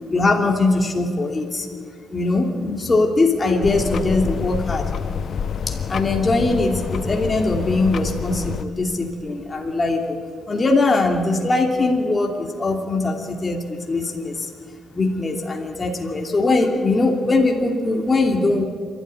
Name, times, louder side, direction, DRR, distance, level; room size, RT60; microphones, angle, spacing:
voice 1, 0.1-1.7 2.1-4.9 5.7-10.2 10.5-14.5 14.9-18.6, left 2 dB, 30° left, 1 dB, 2.8 m, -21 dB
sound 1, 3.6-8.6, left 6 dB, 55° left, 1.0 m, -27 dB
27.5 x 13.0 x 9.9 m, 2.1 s
cardioid pair, 90°, 0 cm